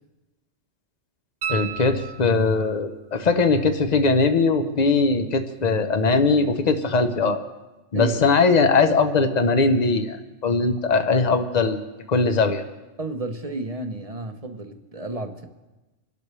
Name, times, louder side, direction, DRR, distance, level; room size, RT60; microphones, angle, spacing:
sound 1, 1.4-2.7 5.5-5.6, right 8 dB, 70° right, 1.2 m, -33 dB
voice 1, 1.5-7.4 7.9-10.2 10.4-11.8 12.1-12.6, left 4 dB, 35° left, 8 dB, 1.0 m, -20 dB
voice 2, 7.9-8.3 13.0-15.4, right 2 dB, 35° right, 6 dB, 0.8 m, -32 dB
26.0 x 12.0 x 3.3 m, 1.1 s
omnidirectional pair, 1.3 m